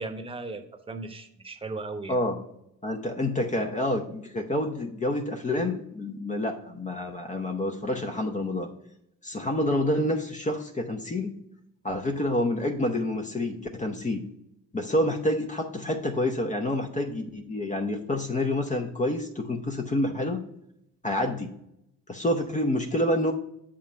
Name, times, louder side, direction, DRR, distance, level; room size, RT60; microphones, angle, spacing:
voice 1, 0.0-2.2, right 3 dB, 20° right, 6 dB, 1.0 m, -37 dB
voice 2, 2.1-2.4 2.8-8.7 9.2-11.3 11.8-14.2 14.7-20.4 21.0-21.5 22.1-23.3, left 1 dB, 25° left, 3 dB, 0.8 m, -28 dB
7.3 x 3.7 x 5.5 m, 0.77 s
cardioid pair, 90°, 30 cm